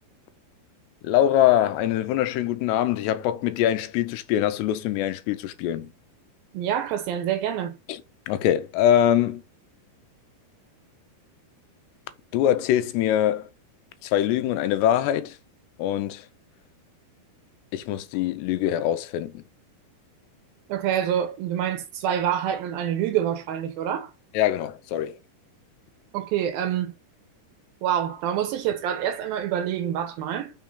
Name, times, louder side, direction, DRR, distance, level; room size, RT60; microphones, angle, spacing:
voice 1, 1.0-5.9 7.9-8.0 8.3-9.4 12.3-13.5 14.0-15.4 15.8-16.3 17.7-19.4 24.3-25.2, left 11 dB, 90° left, 2.9 m, -23 dB
voice 2, 6.5-7.8 20.7-24.1 26.1-26.9 27.8-30.5, right 10 dB, 75° right, 2.4 m, -26 dB
6.2 x 4.5 x 5.5 m
omnidirectional pair, 4.7 m